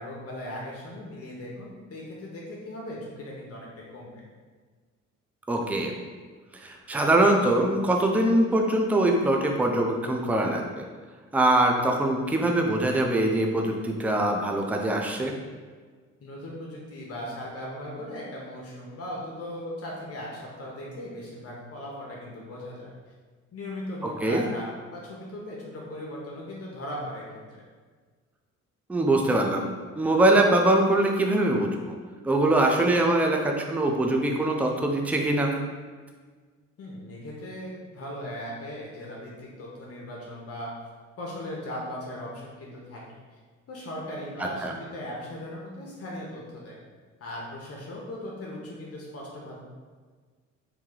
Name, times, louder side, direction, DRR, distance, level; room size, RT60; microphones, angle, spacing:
voice 1, 0.0-4.2 16.2-22.9 23.5-27.3 27.5-27.6 36.8-40.7 41.2-43.0 43.3-43.4 43.7-46.8 47.2-49.6, left 1 dB, 50° left, -4 dB, 0.9 m, -38 dB
voice 2, 5.5-5.9 6.5-10.8 11.3-15.3 24.2-24.4 28.9-29.7 30.0-31.9 32.2-35.5 44.6-44.7, right 1 dB, 5° right, 2 dB, 0.4 m, -23 dB
3.0 x 2.8 x 3.8 m, 1.5 s
cardioid pair, 90°, 30 cm